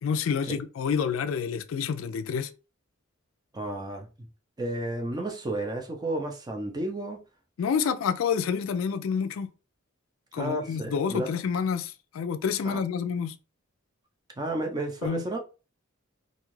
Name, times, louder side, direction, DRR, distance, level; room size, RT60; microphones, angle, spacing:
voice 1, 0.0-2.5 7.6-9.5 10.3-13.4 15.0-15.2, left 6 dB, 70° left, 0.3 m, -28 dB
voice 2, 3.5-4.1 4.6-7.2 10.4-11.3 12.6-12.8 14.4-15.4, right 1 dB, 20° right, 0.5 m, -32 dB
2.6 x 2.3 x 3.1 m
head